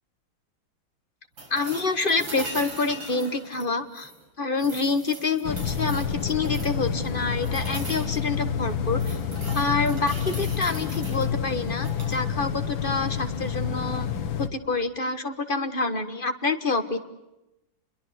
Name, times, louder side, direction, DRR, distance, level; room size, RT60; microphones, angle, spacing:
sound 1, 1.4-4.2 4.6-6.8 7.4-8.2 8.7-11.3 11.8-12.2 14.2-14.3, right 2 dB, 80° right, 6.3 m, -40 dB
voice 1, 1.5-4.1 4.4-9.2 9.5-14.1 14.4-17.0, left 3 dB, 30° left, 9 dB, 1.6 m, -27 dB
sound 2, 5.4-14.5, left 7 dB, 85° left, 2.0 m, -29 dB
28.5 x 22.5 x 8.2 m, 0.93 s
omnidirectional pair, 2.1 m